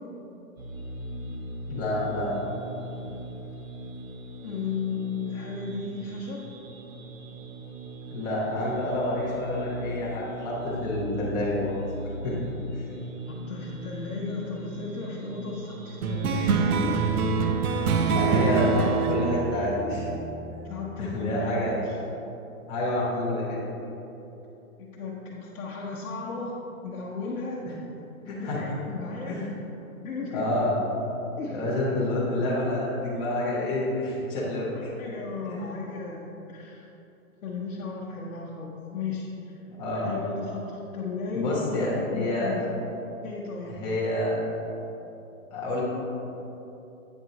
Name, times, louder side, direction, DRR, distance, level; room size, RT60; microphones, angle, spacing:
sound 1, 0.6-18.2, right 1 dB, 65° right, 1.3 m, -40 dB
voice 1, 1.7-2.3 8.1-11.8 12.2-12.3 12.8-12.9 18.1-20.1 20.5-20.6 21.0-21.8 22.7-23.7 28.2-28.6 29.3-29.5 30.3-30.7 31.5-34.9 35.5-35.7 39.7-40.1 41.3-42.6 43.7-44.5 45.5-45.8, left 1 dB, 10° left, -7 dB, 0.7 m, -28 dB
voice 2, 4.4-6.4 13.3-17.0 18.0-18.6 20.6-22.0 24.8-26.5 26.8-27.7 28.4-29.4 30.0-30.4 31.4-31.6 35.0-36.9 37.4-39.6 39.9-42.9 43.2-43.8, left 4 dB, 65° left, -4 dB, 0.9 m, -35 dB
sound 2, 16.0-20.9, right 5 dB, 85° right, 0.7 m, -25 dB
8.0 x 3.6 x 4.0 m, 3.0 s
hypercardioid pair, 160°, 43 cm